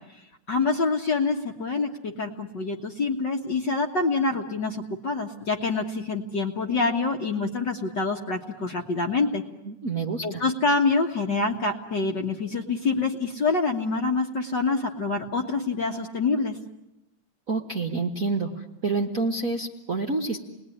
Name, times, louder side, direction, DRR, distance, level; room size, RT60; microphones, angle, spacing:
voice 1, 0.5-9.4 10.2-16.6, left 3 dB, 45° left, 2 dB, 1.6 m, -26 dB
voice 2, 9.6-10.4 17.5-20.4, right 3 dB, 45° right, 1 dB, 1.1 m, -28 dB
29.0 x 20.5 x 9.9 m, 0.97 s
omnidirectional pair, 3.5 m